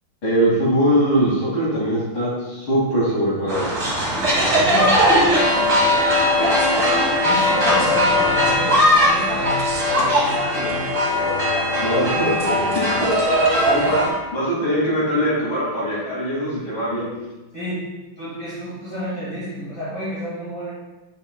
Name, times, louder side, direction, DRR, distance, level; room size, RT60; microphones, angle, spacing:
voice 1, 0.2-3.7 11.8-14.0 14.3-17.1, equal, 75° left, -6 dB, 3.2 m, -22 dB
sound 1, 3.5-14.1, equal, 40° right, 2.1 m, -19 dB
voice 2, 4.2-5.8 7.2-10.9 17.5-17.9 18.2-20.7, equal, 40° left, -10 dB, 2.5 m, -30 dB
8.5 x 6.2 x 2.3 m, 1.1 s
omnidirectional pair, 2.2 m